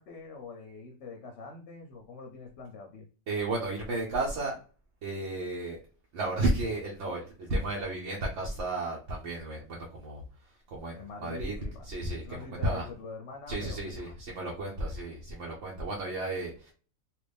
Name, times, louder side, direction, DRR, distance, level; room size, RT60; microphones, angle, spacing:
voice 1, 0.0-3.1 10.9-11.9 12.2-14.1, left 4 dB, 65° left, 2 dB, 0.8 m, -44 dB
voice 2, 3.3-4.6 5.0-5.8 6.1-11.5 11.8-12.9 13.5-16.7, right 2 dB, 60° right, -3 dB, 1.0 m, -33 dB
3.0 x 2.5 x 3.3 m, 0.39 s
omnidirectional pair, 1.5 m